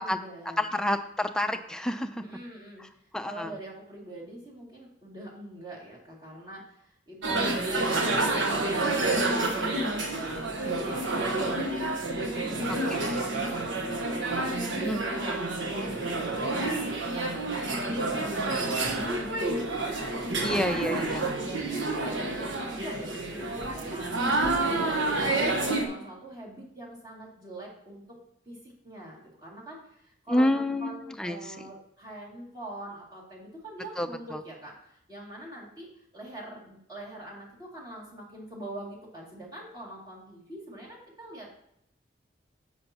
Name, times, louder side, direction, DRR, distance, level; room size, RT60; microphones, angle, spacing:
voice 1, 0.0-0.9 2.2-2.8 3.2-28.2 28.5-41.5, right 1 dB, 20° right, -5 dB, 2.5 m, -43 dB
voice 2, 0.6-2.2 3.1-3.5 12.9-13.1 14.8-15.0 20.4-21.3 30.3-31.5 34.0-34.1, left 1 dB, 5° left, 7 dB, 0.4 m, -28 dB
sound 1, 7.2-25.9, right 2 dB, 90° right, 1.3 m, -29 dB
10.5 x 7.9 x 2.9 m, 0.75 s
head